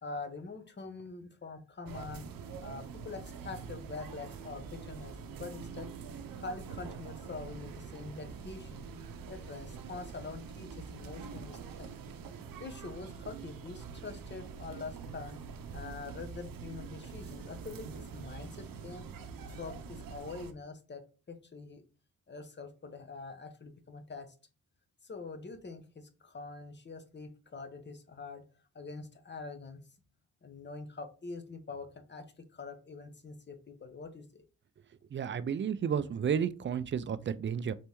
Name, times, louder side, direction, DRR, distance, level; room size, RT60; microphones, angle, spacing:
voice 1, 0.0-2.3 2.6-5.9 6.4-8.8 9.3-11.9 12.6-15.4 15.7-19.0 19.5-21.8 22.3-24.3 25.0-28.4 28.7-29.8 30.4-34.4, left 4 dB, 30° left, 0.9 m, -45 dB
sound 1, 1.9-20.5, right 5 dB, 75° right, 0.7 m, -45 dB
voice 2, 35.1-37.7, right 7 dB, 35° right, 0.4 m, -32 dB
4.2 x 3.3 x 3.0 m
cardioid pair, 75°, 34 cm